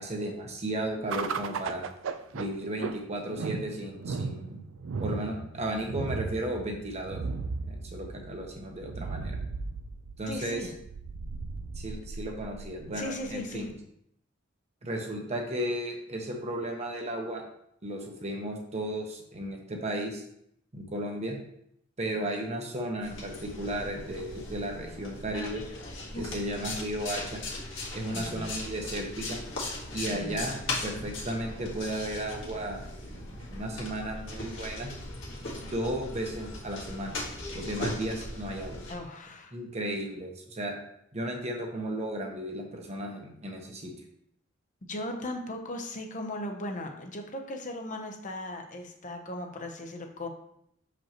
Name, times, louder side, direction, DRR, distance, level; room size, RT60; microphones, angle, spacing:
voice 1, 0.0-1.8 2.3-4.6 5.0-7.2 7.7-9.4 10.2-10.6 11.7-13.7 14.8-17.4 17.8-20.2 20.7-21.4 22.0-25.6 26.1-27.4 27.9-29.4 29.9-30.6 30.8-33.2 33.5-34.9 35.6-37.1 37.5-38.8 39.5-40.7 41.1-43.9, right 1 dB, 35° right, 1 dB, 1.0 m, -34 dB
sound 1, 1.1-13.7, right 4 dB, 75° right, 0.4 m, -37 dB
voice 2, 10.3-10.7 12.9-13.6 28.1-28.4 30.1-30.4 38.9-39.5 44.9-50.3, left 1 dB, 40° left, 4 dB, 0.7 m, -37 dB
sound 2, 23.0-38.9, left 2 dB, 70° left, 1.6 m, -38 dB
6.2 x 5.1 x 3.0 m, 0.74 s
head